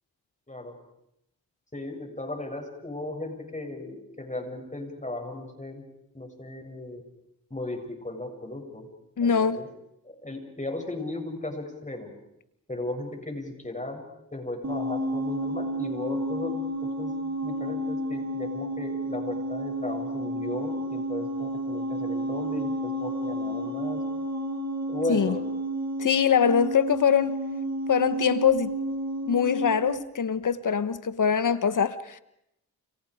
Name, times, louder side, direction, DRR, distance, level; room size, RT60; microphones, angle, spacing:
voice 1, 1.7-5.8 6.1-7.0 7.5-8.9 9.2-9.7 10.0-12.1 12.7-14.0 14.3-16.5 16.8-17.1 17.4-24.0 24.9-25.4, left 2 dB, 20° left, 8.0 m, -36 dB
voice 2, 9.2-9.6 25.1-25.4 26.0-27.4 27.9-28.7 29.3-32.2, left 7 dB, 55° left, 1.3 m, -23 dB
sound 1, 14.6-30.0, right 1 dB, 45° right, 5.2 m, -31 dB
29.5 x 29.5 x 5.1 m
supercardioid pair, 45°, 37 cm